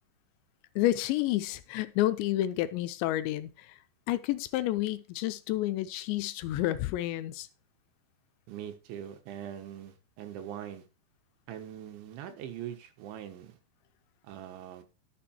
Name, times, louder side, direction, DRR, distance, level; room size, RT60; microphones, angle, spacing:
voice 1, 0.8-3.7 4.1-7.5, left 15 dB, 80° left, 2.9 m, -30 dB
voice 2, 8.5-10.9 11.5-13.6 14.2-14.8, right 10 dB, 85° right, 3.8 m, -42 dB
12.0 x 6.8 x 4.4 m
omnidirectional pair, 5.2 m